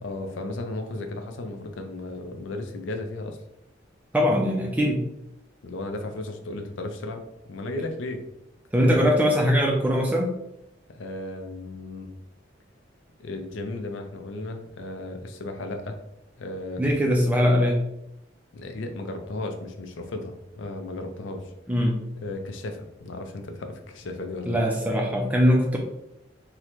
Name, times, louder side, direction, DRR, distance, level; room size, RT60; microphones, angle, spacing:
voice 1, 0.0-3.4 5.6-7.2 7.5-8.2 8.9-9.0 10.9-12.1 13.2-16.0 16.4-16.8 18.5-21.5 22.2-24.6, left 2 dB, 75° left, 5 dB, 0.5 m, -35 dB
voice 2, 4.1-5.0 8.7-10.3 16.8-17.8 21.7-22.0 24.5-25.8, equal, 10° right, 0 dB, 0.3 m, -21 dB
3.7 x 2.1 x 3.0 m, 0.83 s
head